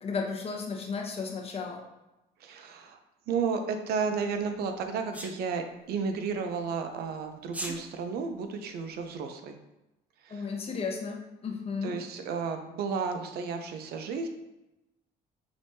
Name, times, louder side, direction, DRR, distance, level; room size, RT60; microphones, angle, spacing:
voice 1, 0.0-1.8 10.3-11.9, left 5 dB, 35° left, 1 dB, 0.9 m, -34 dB
voice 2, 2.4-3.0 3.3-9.6 10.2-10.5 11.8-14.3, right 5 dB, 70° right, 6 dB, 0.6 m, -33 dB
Sneeze, 5.1-5.3 7.4-7.8, right 1 dB, 10° right, 0.5 m, -36 dB
5.0 x 3.4 x 2.7 m, 0.95 s
cardioid pair, 110°, 17 cm